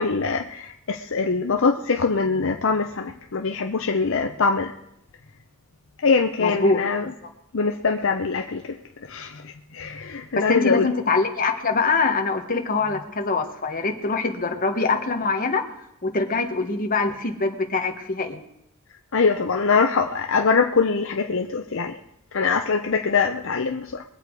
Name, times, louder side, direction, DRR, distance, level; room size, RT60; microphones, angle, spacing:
voice 1, 0.0-4.7 6.0-7.1 7.5-8.8 9.1-10.9 19.1-22.0 22.3-24.0, left 4 dB, 60° left, 4 dB, 0.7 m, -23 dB
voice 2, 6.4-6.8 10.3-15.6 16.0-18.4, left 3 dB, 40° left, 4 dB, 1.4 m, -23 dB
22.5 x 8.4 x 4.8 m, 0.79 s
head